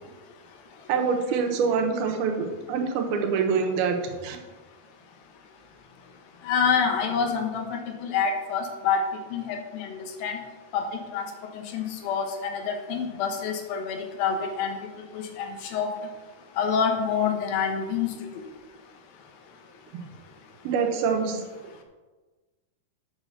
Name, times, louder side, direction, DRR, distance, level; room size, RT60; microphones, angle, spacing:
voice 1, 0.9-4.4 20.6-21.4, right 5 dB, 80° right, 3 dB, 2.9 m, -25 dB
voice 2, 6.4-9.0 9.3-10.4 10.7-10.9 11.1-11.3 11.7-14.8 15.1-15.9 16.6-18.1, left 6 dB, 75° left, 4 dB, 2.8 m, -27 dB
7.4 x 6.3 x 6.6 m, 1.3 s
omnidirectional pair, 4.4 m